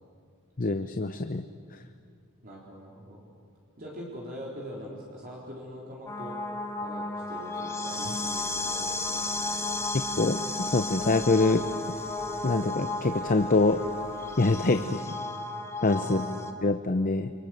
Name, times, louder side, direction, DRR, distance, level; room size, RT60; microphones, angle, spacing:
voice 1, 0.6-1.4 9.9-11.7 12.4-13.8 14.4-15.0 15.8-16.3 16.6-17.3, left 3 dB, 40° left, 9 dB, 0.7 m, -25 dB
voice 2, 2.4-3.2 3.8-6.4 6.8-9.9 14.6-14.8 15.9-16.4, equal, 40° right, -4 dB, 4.0 m, -42 dB
sound 1, 6.1-16.5, left 2 dB, 10° left, 1.5 m, -33 dB
sound 2, 8.0-14.6, right 1 dB, 60° right, 5.3 m, -52 dB
29.0 x 24.0 x 7.9 m, 2.3 s
head